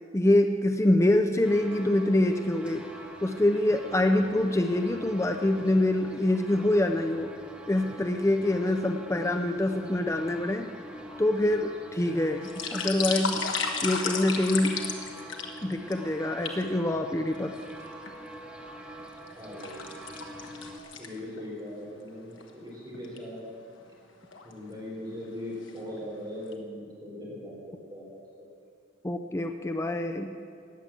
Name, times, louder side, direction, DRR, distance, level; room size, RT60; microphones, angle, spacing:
voice 1, 0.1-2.8 3.2-7.3 7.7-10.7 11.2-13.4 13.8-14.8 15.6-17.5 29.0-30.3, left 1 dB, 15° left, 5 dB, 0.5 m, -25 dB
sound 1, 1.4-20.8, right 1 dB, 5° right, 1.1 m, -45 dB
sound 2, 12.3-15.9 16.4-16.6 17.3-18.1 18.6-21.5 21.8-21.9 22.4-22.5 22.9-23.2 24.0-24.5 25.0-25.3 25.6-26.2 26.5-26.6, left 5 dB, 75° left, 1.5 m, -33 dB
voice 2, 19.4-19.8 21.0-23.4 24.4-28.1 28.4-28.5, left 1 dB, 20° right, -5 dB, 4.2 m, -40 dB
16.0 x 9.8 x 7.5 m, 2.4 s
head